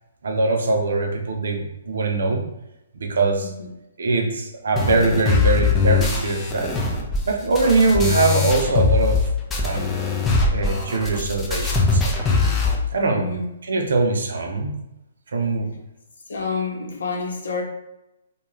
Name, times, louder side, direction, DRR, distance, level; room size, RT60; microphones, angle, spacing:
voice 1, 0.2-2.4 2.9-3.5 4.0-6.7 7.2-9.2 9.6-9.8 10.5-12.5 12.9-13.3 13.6-14.8 15.3-15.7, right 3 dB, 75° right, 3 dB, 0.6 m, -22 dB
sound 1, 4.8-9.2 9.5-12.8, left 4 dB, 15° left, 0.5 m, -21 dB
voice 2, 13.1-13.5 16.3-17.6, left 4 dB, 75° left, 0 dB, 0.8 m, -28 dB
2.4 x 2.2 x 3.0 m, 0.91 s
hypercardioid pair, 135°, 0 cm